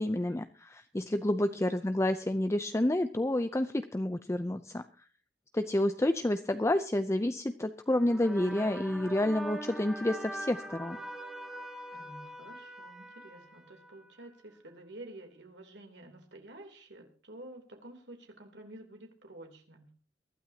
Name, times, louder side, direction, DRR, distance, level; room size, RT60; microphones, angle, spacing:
voice 1, 0.0-4.8 5.5-11.0, left 1 dB, 15° left, 9 dB, 0.5 m, -29 dB
voice 2, 1.5-1.9 11.9-19.9, right 1 dB, 90° right, 3 dB, 3.2 m, -50 dB
sound 1, 7.9-14.3, right 1 dB, 5° right, 2.7 m, -43 dB
22.5 x 12.5 x 2.8 m, 0.39 s
head